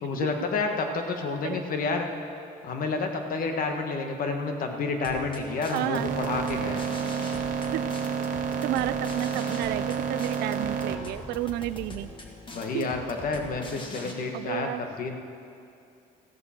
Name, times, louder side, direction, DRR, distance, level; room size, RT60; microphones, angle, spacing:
voice 1, 0.0-2.1 2.6-6.8 12.5-15.1, left 4 dB, 55° left, 4 dB, 1.5 m, -29 dB
sound 1, 5.0-14.1, left 2 dB, 30° left, 1.8 m, -42 dB
voice 2, 5.7-6.1 7.7-7.8 8.6-12.1 12.7-12.9 14.3-14.8, right 15 dB, 85° right, 15 dB, 0.4 m, -31 dB
sound 2, 5.9-10.9, right 7 dB, 55° right, 1.2 m, -30 dB
15.0 x 14.0 x 4.4 m, 2.5 s
cardioid pair, 110°, 17 cm